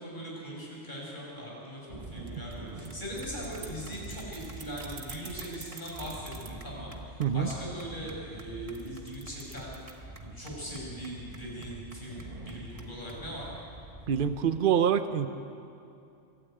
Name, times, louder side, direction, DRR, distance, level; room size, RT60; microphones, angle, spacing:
voice 1, 0.0-13.5, equal, 40° left, -4 dB, 6.4 m, -40 dB
sound 1, 1.9-14.6, right 2 dB, 30° right, 1.4 m, -45 dB
sound 2, 2.3-6.6 8.7-9.9, right 5 dB, 85° right, 1.8 m, -47 dB
voice 2, 14.1-15.3, right 8 dB, 50° right, 10 dB, 0.9 m, -25 dB
23.5 x 13.0 x 9.0 m, 2.6 s
omnidirectional pair, 1.2 m